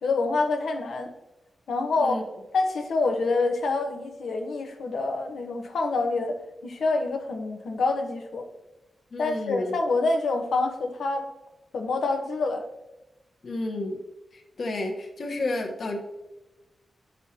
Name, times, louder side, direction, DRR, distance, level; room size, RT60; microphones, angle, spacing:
voice 1, 0.0-1.1 1.7-2.2 2.5-6.4 6.6-8.5 9.2-11.3 11.7-12.7, left 3 dB, 85° left, 4 dB, 1.2 m, -26 dB
voice 2, 9.1-9.7 13.4-14.0 14.3-16.0, left 2 dB, 55° left, 2 dB, 1.4 m, -31 dB
11.0 x 6.8 x 3.0 m, 1.0 s
wide cardioid pair, 165°, 0 cm